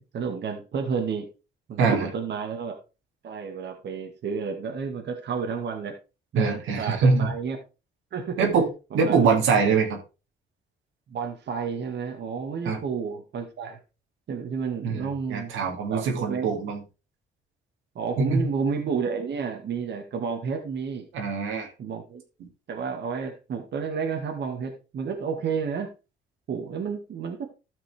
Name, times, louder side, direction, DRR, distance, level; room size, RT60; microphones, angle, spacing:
voice 1, 0.1-1.3 1.7-2.7 3.2-6.0 6.3-7.6 8.1-8.4 8.9-9.3 11.1-13.8 14.3-15.5 15.9-16.4 18.0-21.1 21.8-22.2 22.7-25.9 26.5-27.4, right 6 dB, 60° right, 2 dB, 2.0 m, -31 dB
voice 2, 1.8-2.1 6.4-7.3 8.4-8.7 8.9-10.0 12.6-12.8 14.8-16.8 18.2-18.4 21.1-21.7, right 4 dB, 90° right, 2 dB, 2.6 m, -23 dB
13.5 x 6.0 x 3.5 m, 0.30 s
cardioid pair, 90°, 20 cm